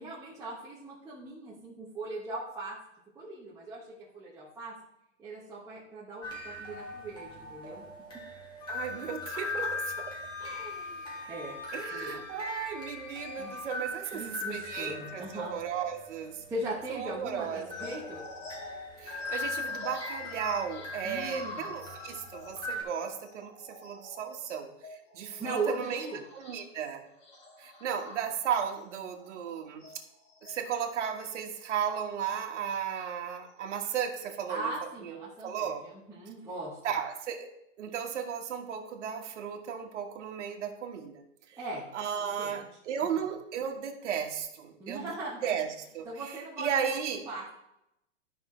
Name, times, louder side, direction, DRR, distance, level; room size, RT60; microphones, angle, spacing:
voice 1, 0.0-2.8 3.1-3.9 4.1-4.7 5.2-7.8 9.3-9.4 10.4-11.6 11.9-12.2 13.4-13.6 14.1-15.5 16.5-18.2 21.0-21.7 25.4-26.2 34.5-37.0 41.5-41.9 42.2-42.7 44.8-45.6 46.0-47.5, right 2 dB, 10° right, -8 dB, 1.1 m, -39 dB
sound 1, 6.2-22.8, left 2 dB, 10° left, 1.2 m, -40 dB
Wind instrument woodwind instrument, 8.6-13.8, left 4 dB, 75° left, 2.3 m, -45 dB
voice 2, 8.7-9.6 11.7-16.4 16.9-17.9 19.0-24.7 25.1-26.1 26.3-27.0 27.6-29.9 30.4-34.7 35.0-35.8 36.8-37.5 37.8-41.2 41.5-41.6 41.9-45.1 45.4-47.3, right 8 dB, 65° right, 3 dB, 1.5 m, -35 dB
sound 2, 17.5-30.6 31.2-33.6, left 1 dB, 35° left, 3.3 m, -49 dB
12.0 x 5.7 x 3.1 m, 0.82 s
hypercardioid pair, 160°, 38 cm